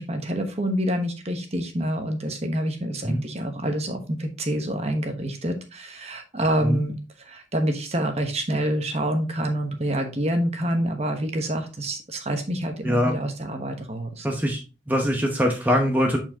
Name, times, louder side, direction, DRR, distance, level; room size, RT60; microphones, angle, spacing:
voice 1, 0.0-14.3, right 1 dB, 35° right, 5 dB, 1.0 m, -27 dB
voice 2, 12.8-13.2 14.2-14.6 14.9-16.2, equal, 10° right, 1 dB, 0.8 m, -22 dB
8.4 x 4.5 x 2.8 m, 0.32 s
head